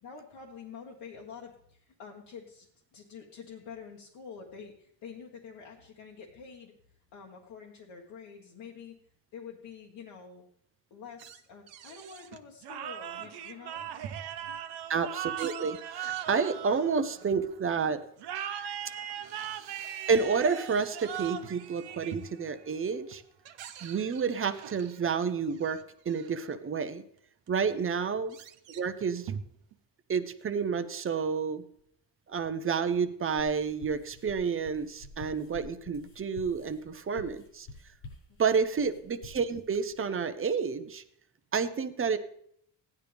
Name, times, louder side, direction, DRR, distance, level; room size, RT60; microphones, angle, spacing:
voice 1, 0.0-2.7 2.9-6.7 7.1-9.0 9.3-10.4 10.9-14.0 14.5-14.6 38.3-38.4, left 6 dB, 70° left, -2 dB, 1.7 m, -47 dB
sound 1, 11.2-12.5 12.9-14.6 15.0-17.6 18.2-26.6 27.2-27.3 27.5-29.8, right 8 dB, 85° right, 1.0 m, -48 dB
sound 2, 12.6-17.4 18.2-22.6, right 10 dB, 60° right, 0.9 m, -39 dB
voice 2, 14.9-18.0 20.1-23.2 23.8-25.8 26.1-27.0 27.5-28.4 28.7-29.3 30.1-31.6 32.3-37.7 38.4-41.0 41.5-42.2, right 5 dB, 30° right, 10 dB, 0.7 m, -30 dB
sound 3, 33.4-40.0, left 2 dB, 85° left, 5.7 m, -49 dB
16.0 x 10.5 x 3.5 m, 0.68 s
cardioid pair, 145°, 44 cm